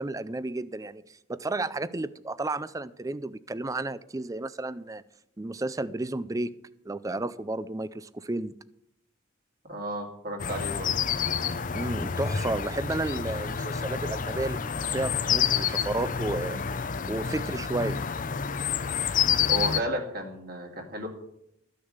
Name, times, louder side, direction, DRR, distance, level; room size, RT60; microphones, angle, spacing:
voice 1, 0.0-5.0 5.4-6.6 6.9-8.5 11.7-16.6 17.1-18.0, right 2 dB, 15° right, 0.4 m, -32 dB
voice 2, 9.6-10.9 19.5-21.1, right 1 dB, 45° right, 2.4 m, -33 dB
sound 1, 10.4-19.8, left 7 dB, 40° left, 0.5 m, -28 dB
14.0 x 6.6 x 8.0 m
head